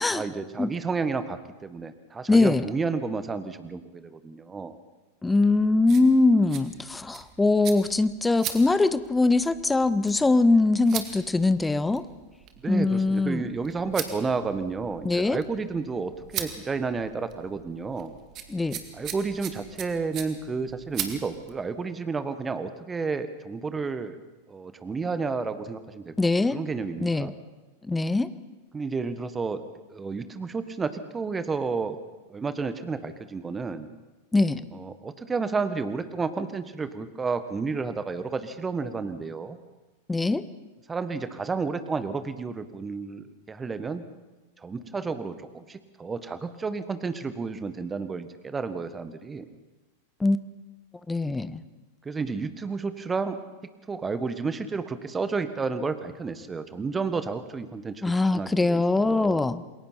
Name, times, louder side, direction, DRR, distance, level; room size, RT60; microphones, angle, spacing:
voice 1, 0.0-4.7 12.6-18.1 18.9-24.2 24.5-26.1 26.5-27.3 28.7-29.6 29.9-32.0 32.3-33.9 34.7-39.6 40.9-44.0 44.6-49.5 52.0-53.4 53.9-59.5, right 4 dB, 15° right, 12 dB, 1.4 m, -31 dB
voice 2, 2.3-2.7 5.2-12.0 12.7-13.4 15.0-15.4 18.5-18.8 26.2-26.6 27.0-27.3 27.9-28.3 34.3-34.7 40.1-40.4 50.2-50.4 51.1-51.6 58.0-59.6, left 3 dB, 10° left, 15 dB, 0.8 m, -22 dB
sound 1, 5.4-21.6, right 9 dB, 35° right, 2.1 m, -41 dB
28.0 x 22.0 x 4.4 m, 1.2 s
figure-of-eight pair, 90°, 0 cm